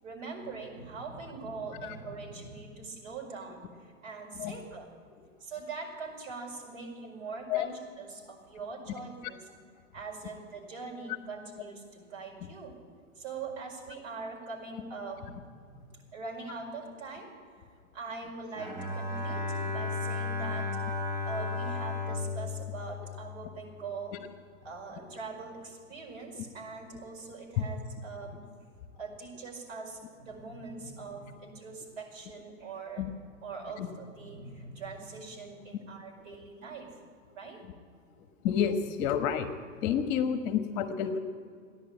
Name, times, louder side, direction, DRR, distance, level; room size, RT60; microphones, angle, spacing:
voice 1, 0.0-4.9 5.4-9.5 9.9-12.8 13.2-15.8 16.1-17.3 17.9-20.7 21.2-24.2 24.6-28.4 29.0-33.0 33.4-36.9 37.3-37.6, right 4 dB, 60° right, 0 dB, 5.1 m, -42 dB
Bowed string instrument, 18.6-23.9, left 3 dB, 5° right, 0.4 m, -34 dB
voice 2, 38.4-39.5 39.8-41.2, left 8 dB, 35° left, 9 dB, 1.3 m, -29 dB
15.0 x 10.5 x 9.0 m, 2.1 s
hypercardioid pair, 140°, 42 cm